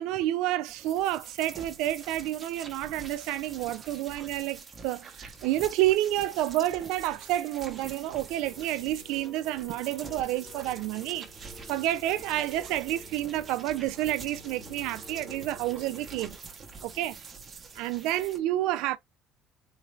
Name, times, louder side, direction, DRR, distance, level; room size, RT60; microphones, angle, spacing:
voice 1, 0.0-16.4 16.8-17.1 17.8-19.0, right 14 dB, 75° right, 0.4 m, -29 dB
sound 1, 0.7-18.4, right 4 dB, 25° right, 0.8 m, -46 dB
sound 2, 6.2-16.3, left 1 dB, 40° left, 1.2 m, -51 dB
4.0 x 2.4 x 3.2 m
cardioid pair, 165°, 0 cm